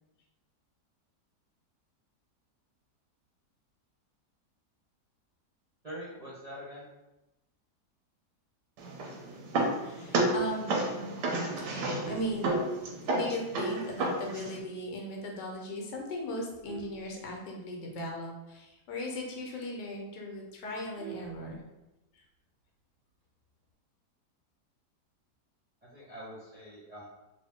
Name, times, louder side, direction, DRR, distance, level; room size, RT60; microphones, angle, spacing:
voice 1, 5.8-6.9 25.9-27.1, equal, 35° right, -8 dB, 0.7 m, -44 dB
sound 1, 8.8-14.6, right 2 dB, 85° right, 1.2 m, -31 dB
voice 2, 9.8-10.7 11.6-12.5 13.1-21.6, left 1 dB, 85° left, 0 dB, 1.4 m, -38 dB
Vehicle horn car horn honking, 11.9-13.2 13.7-13.9 14.2-14.3 14.8-14.9 15.1-15.5 16.1-17.9 18.3-18.4 18.6-18.7 19.2-19.3 19.6-19.7 20.0-22.0 23.2-23.6, right 6 dB, 60° right, 0.8 m, -47 dB
3.0 x 2.6 x 3.5 m, 0.99 s
omnidirectional pair, 1.8 m